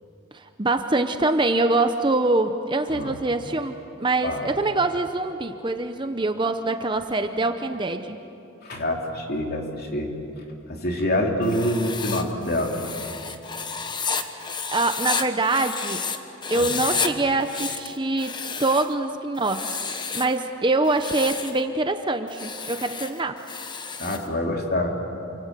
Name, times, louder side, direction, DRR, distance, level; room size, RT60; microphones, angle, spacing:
voice 1, 0.3-8.2 14.3-14.5 14.7-16.0 16.5-18.3 18.6-23.4, right 2 dB, 20° right, 7 dB, 0.8 m, -24 dB
voice 2, 8.6-10.1 10.7-12.8 16.5-16.8 24.0-24.9, left 1 dB, 45° left, 1 dB, 3.2 m, -26 dB
Writing, 11.4-16.2 16.4-17.1 17.4-18.9 19.4-20.4 20.9-21.6 22.3-24.3, left 5 dB, 20° left, 1.1 m, -31 dB
28.5 x 26.0 x 7.6 m, 2.8 s
head